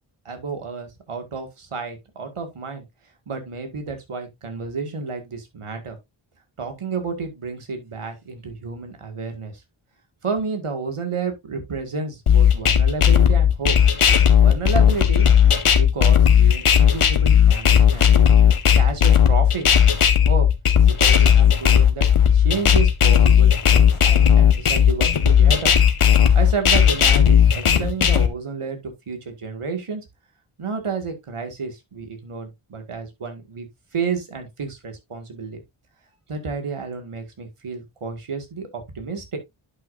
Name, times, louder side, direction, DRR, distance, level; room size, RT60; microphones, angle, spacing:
voice 1, 0.3-2.8 3.3-6.0 6.6-9.6 10.2-13.8 14.4-18.3 18.8-19.7 20.2-20.5 20.9-25.8 26.3-30.0 30.6-33.7 33.9-35.6 36.3-39.4, right 4 dB, 90° right, 2.1 m, -31 dB
sound 1, 12.3-28.3, left 8 dB, 90° left, 1.2 m, -15 dB
11.0 x 5.9 x 2.6 m
cardioid pair, 40°, 50 cm